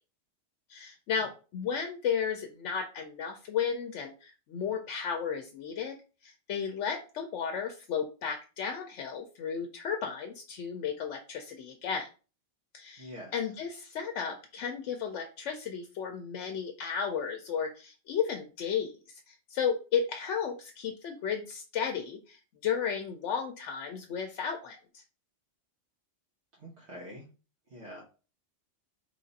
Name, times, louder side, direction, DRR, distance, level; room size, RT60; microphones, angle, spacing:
voice 1, 0.7-6.0 6.2-12.1 12.7-18.9 19.3-24.8, left 7 dB, 75° left, 4 dB, 0.9 m, -34 dB
voice 2, 13.0-13.5 26.6-27.2 27.7-28.0, equal, 65° right, -3 dB, 1.1 m, -45 dB
3.3 x 2.5 x 3.9 m, 0.34 s
omnidirectional pair, 1.2 m